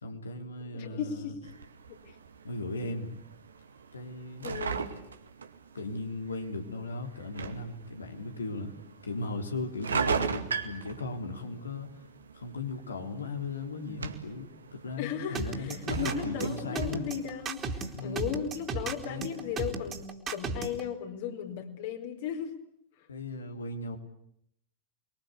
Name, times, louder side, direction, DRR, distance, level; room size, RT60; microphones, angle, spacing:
voice 1, 0.0-1.3 2.4-3.1 3.9-4.5 5.7-8.7 9.0-11.9 12.3-17.1 17.9-18.3 19.1-19.3 23.1-24.0, left 2 dB, 75° left, 5 dB, 3.5 m, -37 dB
voice 2, 0.6-1.5 1.9-2.1 4.4-4.9 15.0-22.5, left 8 dB, 50° left, 4 dB, 4.7 m, -36 dB
sound 1, 1.4-20.1, right 5 dB, 70° right, 2.2 m, -39 dB
sound 2, 15.3-20.8, right 4 dB, 25° right, 3.5 m, -34 dB
29.5 x 23.0 x 8.4 m, 0.74 s
figure-of-eight pair, 90°, 0 cm